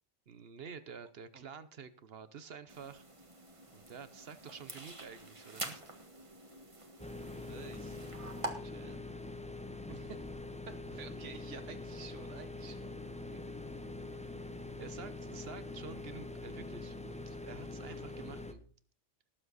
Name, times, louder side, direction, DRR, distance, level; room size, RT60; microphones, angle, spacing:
voice 1, 0.3-3.0 3.7-5.8 14.8-18.6, right 6 dB, 60° right, 13 dB, 1.0 m, -49 dB
sound 1, 2.7-8.5, right 2 dB, 25° right, 1.6 m, -46 dB
sound 2, 7.0-18.5, left 2 dB, 5° left, 0.7 m, -44 dB
voice 2, 7.4-8.0 8.6-9.0 9.9-10.3 10.7-12.9, right 6 dB, 80° right, 9 dB, 1.3 m, -50 dB
18.5 x 7.6 x 4.1 m, 0.43 s
omnidirectional pair, 1.2 m